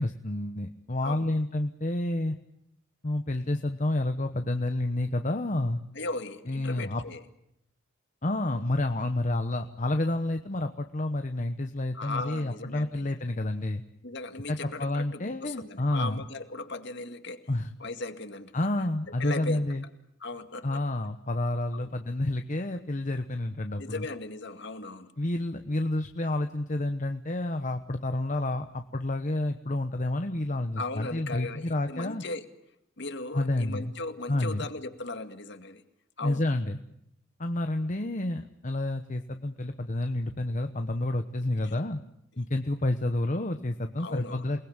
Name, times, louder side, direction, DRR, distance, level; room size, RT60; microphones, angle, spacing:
voice 1, 0.0-2.4 3.0-5.8 6.5-7.0 8.2-13.8 14.5-16.2 17.5-17.7 18.5-19.8 20.6-24.1 25.2-32.2 33.3-33.9 34.3-34.6 36.2-36.8 37.4-42.0 42.4-44.6, left 1 dB, 40° left, 1.1 m, -29 dB
voice 2, 5.9-7.2 11.9-13.1 14.0-17.5 17.8-18.9 19.2-19.7 20.2-20.8 21.7-21.9 23.8-25.1 30.8-32.4 33.0-35.8 36.2-36.4 41.6-41.7 44.0-44.5, left 2 dB, 60° left, 2.2 m, -37 dB
28.5 x 20.0 x 8.9 m
head